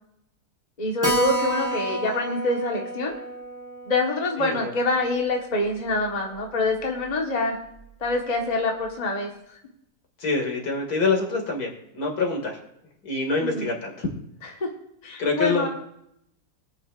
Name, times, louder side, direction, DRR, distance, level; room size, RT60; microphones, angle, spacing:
voice 1, 0.8-3.1 3.9-7.6 8.0-9.3 13.4-13.7 14.6-14.7 15.0-15.7, left 2 dB, 25° left, 0 dB, 1.4 m, -25 dB
Keyboard (musical), 1.0-6.1 6.4-6.5 6.7-6.8 7.1-7.2 7.8-8.1, right 1 dB, 10° right, 1.2 m, -31 dB
voice 2, 4.4-4.7 10.2-12.6 13.0-14.1 15.2-15.7, left 3 dB, 65° left, 1 dB, 2.7 m, -26 dB
24.0 x 9.0 x 2.5 m, 0.76 s
omnidirectional pair, 1.8 m